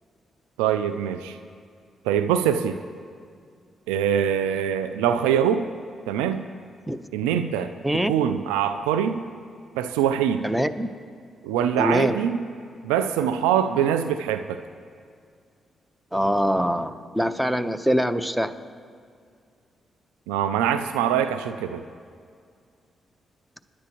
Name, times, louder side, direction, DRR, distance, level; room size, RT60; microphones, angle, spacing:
voice 1, 0.6-1.4 2.0-2.8 3.9-5.7 6.1-6.4 7.1-9.2 9.8-10.5 11.4-12.4 12.8-14.6 20.3-21.8, right 9 dB, 90° right, 9 dB, 0.4 m, -23 dB
voice 2, 10.4-10.9 11.8-12.2 16.1-18.5, equal, 5° right, 11 dB, 0.8 m, -23 dB
25.0 x 10.5 x 3.0 m, 2.2 s
hypercardioid pair, 45°, 0 cm